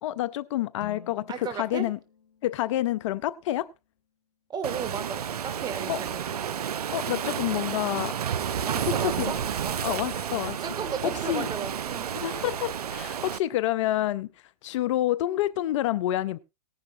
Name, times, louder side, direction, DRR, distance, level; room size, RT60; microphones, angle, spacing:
voice 1, 0.0-2.0 2.4-3.7 5.9-6.0 6.9-8.2 8.9-9.3 9.8-10.6 11.0-11.5 12.1-14.3 14.6-16.4, left 14 dB, 50° left, 0.6 m, -28 dB
sound 1, 0.8-4.8, left 7 dB, 85° left, 1.2 m, -51 dB
voice 2, 1.3-1.9 4.5-6.3 8.7-9.4 9.6-10.2 10.6-12.1, right 6 dB, 20° right, 2.3 m, -35 dB
Waves surf, 4.6-13.4, right 8 dB, 80° right, 0.7 m, -31 dB
18.0 x 10.5 x 2.7 m
hypercardioid pair, 120°, 20 cm